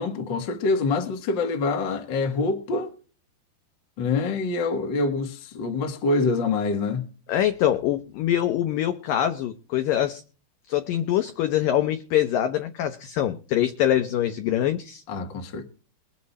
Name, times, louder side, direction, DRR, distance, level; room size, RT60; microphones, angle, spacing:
voice 1, 0.0-2.9 4.0-7.0 15.1-15.7, left 3 dB, 55° left, 1.3 m, -25 dB
voice 2, 7.3-10.2 10.7-15.0, left 11 dB, 80° left, 1.9 m, -24 dB
22.0 x 7.6 x 4.2 m
omnidirectional pair, 5.1 m